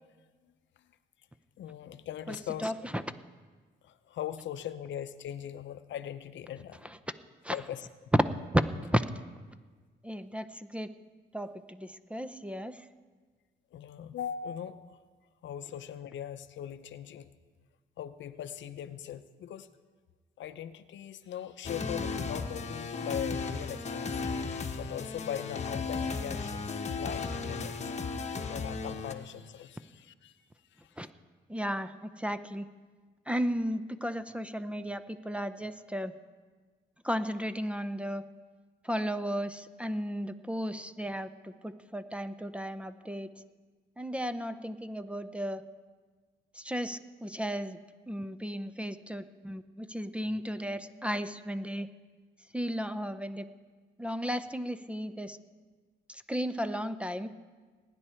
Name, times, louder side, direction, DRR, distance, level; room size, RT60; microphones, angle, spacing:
voice 1, 1.6-2.7 3.8-6.8 7.5-7.9 13.7-15.0 15.4-17.3 18.0-19.7 20.4-30.4 30.8-31.0, left 10 dB, 70° left, 12 dB, 0.7 m, -40 dB
voice 2, 2.3-3.0 6.8-7.0 7.4-7.6 8.5-9.0 10.0-10.9 11.3-12.9 31.0-31.1 31.5-32.7 33.3-36.1 37.0-38.2 38.8-43.3 44.0-45.6 46.5-51.9 52.5-53.5 54.0-55.4 56.1-57.3, equal, 5° right, 12 dB, 0.6 m, -34 dB
sound 1, 21.6-29.1, left 4 dB, 35° left, 1.1 m, -35 dB
20.5 x 9.9 x 4.4 m, 1.4 s
cardioid pair, 90°, 20 cm